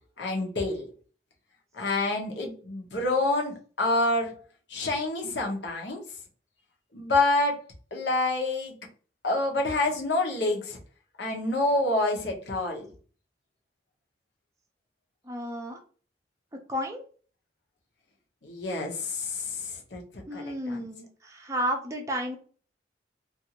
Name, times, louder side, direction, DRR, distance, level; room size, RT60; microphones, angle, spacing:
voice 1, 0.2-0.9 1.7-4.4 4.7-6.0 6.9-7.6 7.9-8.7 9.2-10.8 11.2-12.9 18.4-20.0 20.3-20.8, left 2 dB, 80° left, 0 dB, 0.9 m, -27 dB
voice 2, 15.2-15.8 16.7-17.0 20.3-22.4, equal, 15° right, 2 dB, 0.4 m, -32 dB
2.5 x 2.5 x 2.8 m, 0.40 s
head